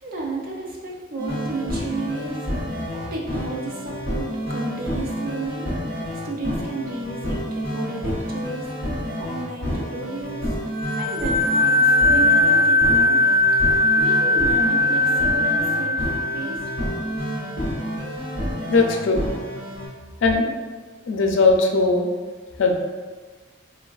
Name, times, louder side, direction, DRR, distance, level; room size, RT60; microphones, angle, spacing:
voice 1, 0.0-2.4 2.9-5.7 6.2-8.7 8.9-10.5 11.0-13.2 14.0-16.0 16.3-16.7, right 2 dB, 45° right, -2 dB, 0.5 m, -32 dB
sound 1, 1.2-19.9, equal, 70° right, 0.9 m, -29 dB
sound 2, 10.7-17.2, left 2 dB, 85° right, 1.1 m, -19 dB
voice 2, 18.7-19.3 20.2-20.5 21.1-22.1 22.6-22.8, left 3 dB, 75° left, 2 dB, 0.4 m, -19 dB
3.8 x 2.2 x 2.3 m, 1.4 s
head